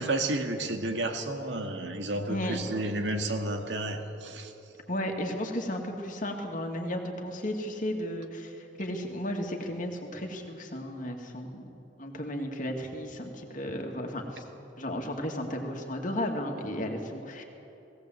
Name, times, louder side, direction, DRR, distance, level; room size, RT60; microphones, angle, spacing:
voice 1, 0.0-4.5, right 2 dB, 85° right, 4 dB, 2.0 m, -31 dB
voice 2, 4.9-11.7 12.0-14.4 14.8-17.4, left 1 dB, 45° left, 2 dB, 2.3 m, -34 dB
19.0 x 17.5 x 8.0 m, 2.9 s
head